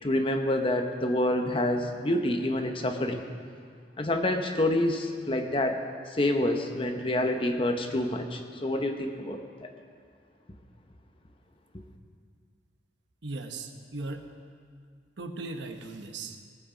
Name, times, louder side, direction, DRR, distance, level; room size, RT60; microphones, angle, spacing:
voice 1, 0.0-3.2 4.0-9.7, left 1 dB, 30° left, 5 dB, 0.9 m, -27 dB
voice 2, 13.2-14.2 15.2-16.4, right 3 dB, 70° right, 5 dB, 1.0 m, -37 dB
19.0 x 8.0 x 5.0 m, 2.1 s
head